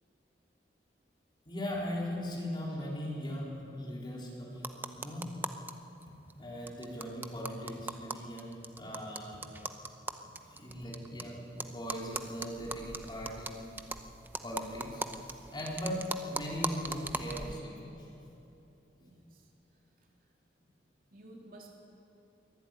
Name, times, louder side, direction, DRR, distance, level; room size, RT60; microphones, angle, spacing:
voice 1, 1.5-5.3 6.4-9.5 10.2-13.7 14.4-15.0 15.5-16.0 16.3-18.1, equal, 25° left, -4 dB, 4.3 m, -39 dB
sound 1, 4.6-5.7 6.0-6.1 6.3-6.4 6.7-11.2 11.6-17.6, right 2 dB, 10° right, 0.7 m, -40 dB
voice 2, 18.9-19.5 20.0-20.1 21.1-21.7, right 1 dB, 55° right, -1 dB, 3.3 m, -53 dB
22.0 x 12.5 x 9.2 m, 2.9 s
head